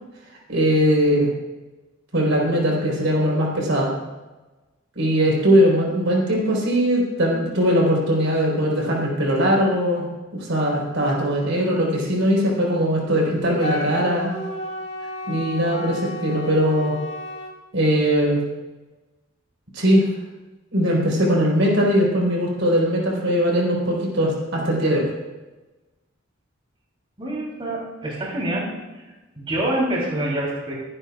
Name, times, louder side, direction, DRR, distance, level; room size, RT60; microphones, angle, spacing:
voice 1, 0.5-1.3 2.1-3.9 4.9-10.0 10.3-14.3 15.3-17.0 17.7-18.4 19.7-20.0 20.7-25.1, equal, 70° right, -3 dB, 4.5 m, -20 dB
Wind instrument woodwind instrument, 13.6-17.5, left 1 dB, 60° left, 2.0 m, -32 dB
voice 2, 27.2-28.7 29.0-30.8, right 1 dB, 25° right, -5 dB, 3.5 m, -26 dB
23.0 x 11.0 x 2.5 m, 1.1 s
head